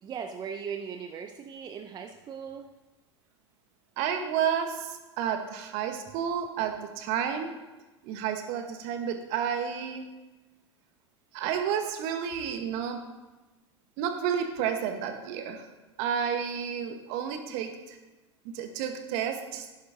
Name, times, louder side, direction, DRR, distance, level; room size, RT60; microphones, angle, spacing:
voice 1, 0.0-2.7, right 7 dB, 25° right, 6 dB, 0.6 m, -38 dB
voice 2, 4.0-7.5 8.0-10.1 11.3-13.1 14.0-15.7 16.0-18.0 18.4-19.7, right 8 dB, 50° right, 7 dB, 1.3 m, -31 dB
11.5 x 11.0 x 2.8 m, 1.1 s
figure-of-eight pair, 85°, 15 cm